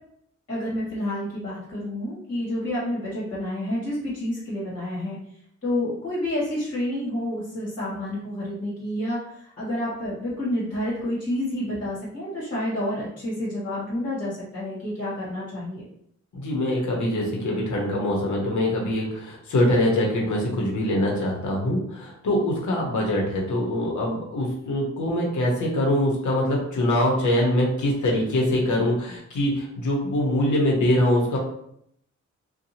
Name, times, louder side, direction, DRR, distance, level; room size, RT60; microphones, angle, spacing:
voice 1, 0.5-5.2 5.6-15.9, left 1 dB, 35° left, -8 dB, 1.3 m, -29 dB
voice 2, 16.3-31.4, left 1 dB, 70° left, -2 dB, 0.9 m, -23 dB
2.7 x 2.3 x 2.8 m, 0.71 s
cardioid pair, 90°, 31 cm